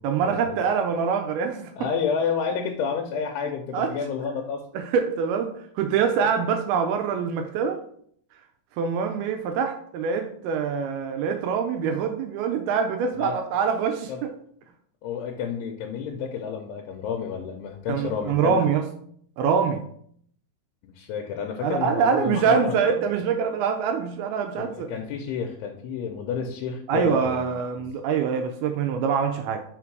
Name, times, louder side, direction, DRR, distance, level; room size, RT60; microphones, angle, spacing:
voice 1, 0.0-1.9 3.7-3.9 4.7-7.8 8.8-14.3 17.9-18.8 19.4-19.8 21.6-24.9 26.9-29.6, right 6 dB, 80° right, 5 dB, 2.4 m, -24 dB
voice 2, 1.8-4.6 13.2-13.4 14.1-14.2 15.0-18.6 20.8-23.0 24.5-27.5 27.8-27.9, left 6 dB, 85° left, 3 dB, 2.7 m, -30 dB
5.8 x 3.7 x 4.6 m, 0.64 s
omnidirectional pair, 4.6 m